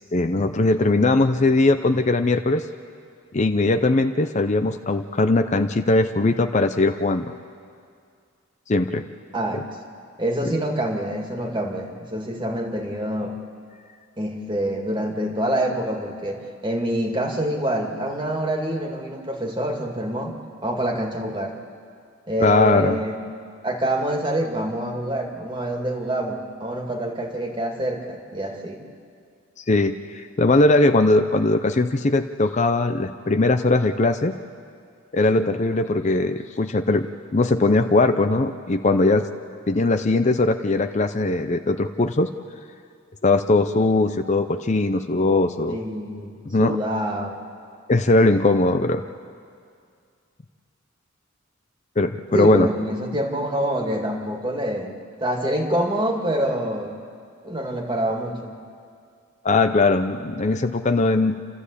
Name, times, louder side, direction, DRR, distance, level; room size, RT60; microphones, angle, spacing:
voice 1, 0.0-2.6 3.3-7.3 8.7-9.1 22.4-23.0 29.7-34.3 35.1-37.1 37.3-39.2 39.7-42.3 43.2-45.8 46.5-46.8 47.9-49.0 52.0-52.7 59.4-61.3, left 2 dB, 35° left, 8 dB, 0.6 m, -20 dB
voice 2, 9.3-9.6 10.2-13.4 14.2-20.3 20.6-21.6 22.3-23.1 23.6-28.8 45.7-47.4 52.3-56.9 57.4-58.6, right 1 dB, 25° right, 2 dB, 2.1 m, -26 dB
29.0 x 13.5 x 8.4 m, 2.2 s
head